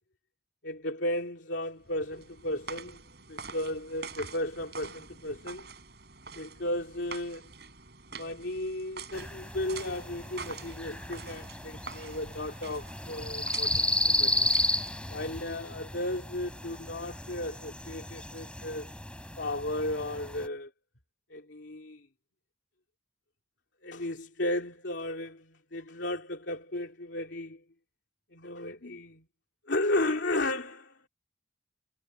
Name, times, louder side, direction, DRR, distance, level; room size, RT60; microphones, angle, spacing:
voice 1, 0.6-3.0 3.3-5.7 6.3-7.5 8.1-14.5 15.1-18.9 19.4-20.7 21.3-22.1 23.8-27.6 28.3-29.2 29.7-31.1, left 1 dB, 75° left, 2.7 m, -34 dB
sound 1, 1.8-15.1, right 4 dB, 60° right, 7.8 m, -46 dB
sound 2, 9.1-20.5, left 1 dB, 5° left, 6.5 m, -33 dB
head